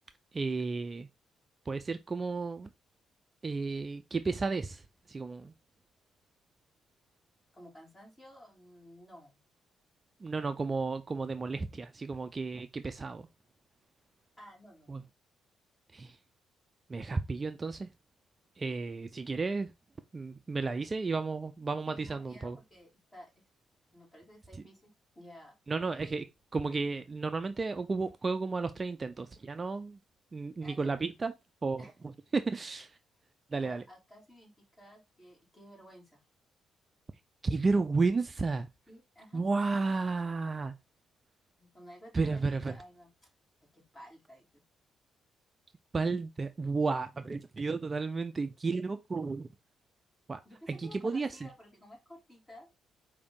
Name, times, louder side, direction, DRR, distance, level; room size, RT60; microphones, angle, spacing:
voice 1, 0.3-1.1 1.7-2.7 3.4-5.5 10.2-13.3 14.9-15.0 15.9-16.2 16.9-17.9 18.6-19.7 20.1-22.6 25.7-26.2 26.5-30.0 30.3-31.3 31.6-31.9 32.3-33.0 33.5-33.8 37.4-38.7 39.3-40.7 42.1-42.8 45.9-49.5 50.3-50.4 50.7-51.5, right 4 dB, 30° right, 0.4 m, -32 dB
voice 2, 7.5-9.4 14.4-15.0 21.9-23.3 23.9-26.3 30.6-30.9 31.8-31.9 33.5-36.2 38.9-39.5 41.6-43.1 43.7-44.6 50.4-52.7, equal, 20° left, 2.5 m, -54 dB
4.9 x 2.6 x 3.5 m
cardioid pair, 90°, 0 cm